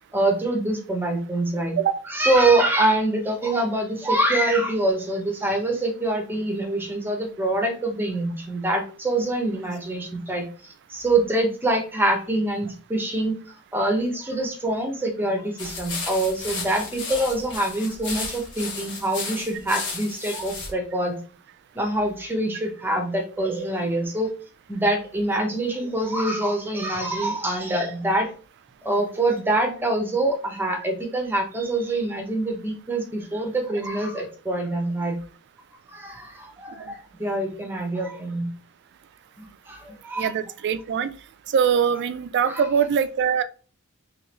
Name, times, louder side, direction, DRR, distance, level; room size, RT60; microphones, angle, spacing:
voice 1, 0.1-1.8 2.1-13.4 13.7-21.2 21.7-24.3 24.7-28.3 28.8-35.2 35.9-38.5 39.4-40.3 42.5-42.6, right 1 dB, 10° right, 0.8 m, -25 dB
sound 1, 15.6-20.7, left 4 dB, 60° left, 1.4 m, -34 dB
voice 2, 40.2-41.1 41.5-43.4, right 7 dB, 50° right, 0.3 m, -22 dB
3.8 x 2.9 x 3.0 m
head